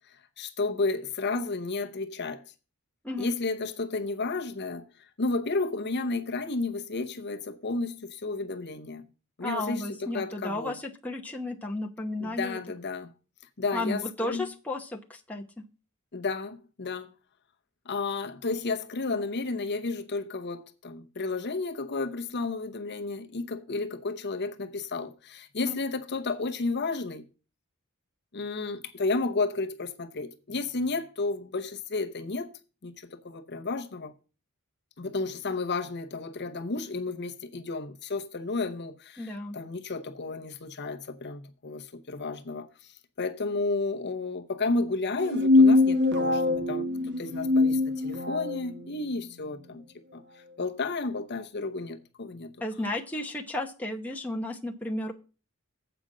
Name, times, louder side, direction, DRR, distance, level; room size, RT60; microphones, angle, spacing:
voice 1, 0.1-2.4 3.2-4.8 5.2-9.1 9.4-10.8 12.2-13.1 13.6-14.5 16.1-17.1 17.8-27.2 28.3-32.5 32.8-34.1 35.0-49.8 50.1-52.5, left 3 dB, 50° left, 0.8 m, -32 dB
voice 2, 9.4-12.6 13.7-15.6 25.6-25.7 39.2-39.6 52.6-55.1, left 1 dB, 5° left, 0.9 m, -33 dB
sound 1, 45.2-48.6, left 3 dB, 50° right, 1.2 m, -22 dB
8.0 x 5.1 x 7.3 m
head